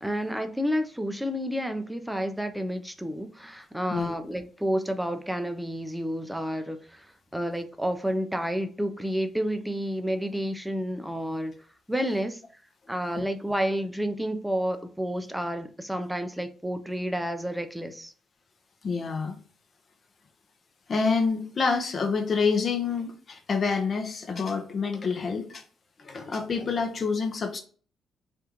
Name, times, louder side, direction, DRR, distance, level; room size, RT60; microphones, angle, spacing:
voice 1, 0.0-11.5 11.9-12.4 12.9-18.1, equal, 5° right, 0.4 m, -30 dB
voice 2, 18.8-19.4 20.9-25.6 26.0-27.6, left 5 dB, 45° left, 0.6 m, -27 dB
3.5 x 2.4 x 2.8 m
cardioid pair, 90°, 0 cm